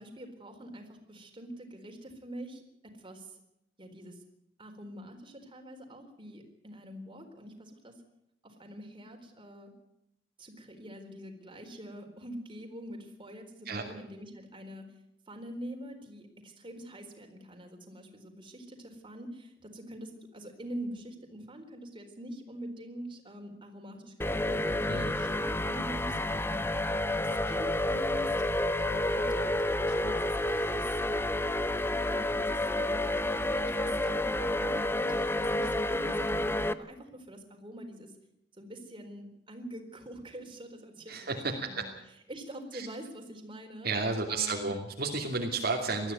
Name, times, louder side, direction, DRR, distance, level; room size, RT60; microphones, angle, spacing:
voice 1, 0.0-3.4 3.8-4.2 4.6-7.9 8.4-9.7 10.4-14.9 15.3-26.7 27.1-28.3 28.8-31.4 31.8-38.1 38.6-41.3 41.6-41.9 42.3-43.9 44.3-44.7, right 1 dB, 30° right, 3 dB, 4.1 m, -45 dB
sound 1, 24.2-36.7, left 1 dB, 15° left, 0.8 m, -30 dB
voice 2, 41.1-41.8 42.7-42.9 43.8-46.1, right 3 dB, 55° right, 1 dB, 2.7 m, -32 dB
20.5 x 14.0 x 9.4 m, 0.81 s
head